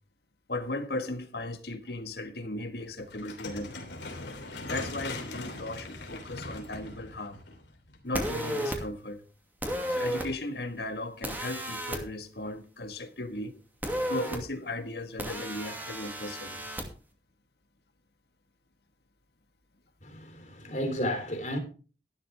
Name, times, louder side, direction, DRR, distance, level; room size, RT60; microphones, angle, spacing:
voice 1, 0.5-3.8 4.7-7.4 8.0-9.2 9.9-13.5 14.1-16.7, left 2 dB, 65° left, 1.7 m, -36 dB
sound 1, 3.1-8.2, left 2 dB, 85° left, 3.2 m, -40 dB
sound 2, 8.1-8.8 9.6-10.3 11.2-12.0 13.8-14.4 15.2-16.8, right 1 dB, 10° right, 2.5 m, -33 dB
voice 2, 20.0-21.6, equal, 45° left, 3.7 m, -32 dB
14.0 x 12.0 x 3.6 m
head